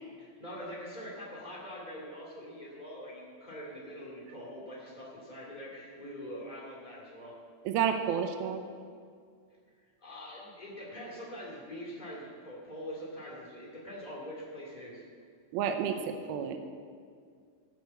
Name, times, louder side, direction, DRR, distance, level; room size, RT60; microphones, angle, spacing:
voice 1, 0.2-7.4 10.0-15.0, equal, 75° left, -5 dB, 0.4 m, -44 dB
voice 2, 7.7-8.6 15.5-16.6, right 8 dB, 85° right, 6 dB, 2.1 m, -30 dB
15.5 x 6.6 x 8.0 m, 2.1 s
omnidirectional pair, 5.4 m